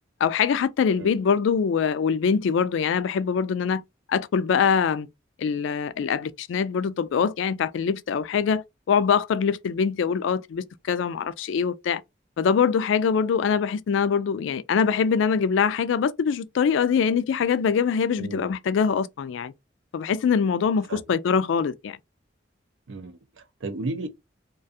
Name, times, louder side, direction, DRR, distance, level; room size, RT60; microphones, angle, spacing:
voice 1, 0.2-3.8 4.1-5.1 5.4-12.0 12.4-19.5 19.9-22.0, left 6 dB, 80° left, 0.3 m, -23 dB
voice 2, 18.2-18.5 20.9-21.0 22.9-24.1, right 2 dB, 80° right, 0.5 m, -34 dB
2.4 x 2.3 x 2.6 m
head